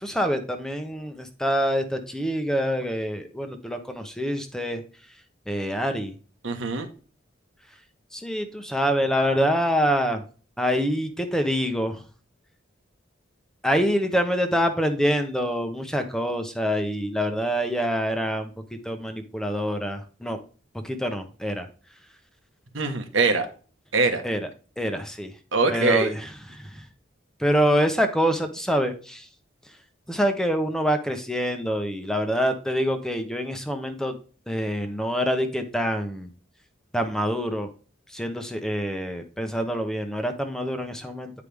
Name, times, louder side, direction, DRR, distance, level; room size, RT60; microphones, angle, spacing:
voice 1, 0.0-4.8 5.5-6.1 8.1-10.2 10.6-12.0 13.6-18.5 18.8-20.4 20.8-21.7 24.2-24.4 24.8-25.3 25.7-26.2 26.5-26.8 27.4-29.3 30.1-34.2 34.5-36.3 36.9-37.7 38.1-41.3, equal, 5° left, 6 dB, 0.8 m, -25 dB
voice 2, 6.4-6.9 22.7-23.5 23.9-24.2 25.5-26.1, right 3 dB, 85° right, 5 dB, 1.3 m, -22 dB
9.6 x 4.9 x 3.4 m, 0.38 s
head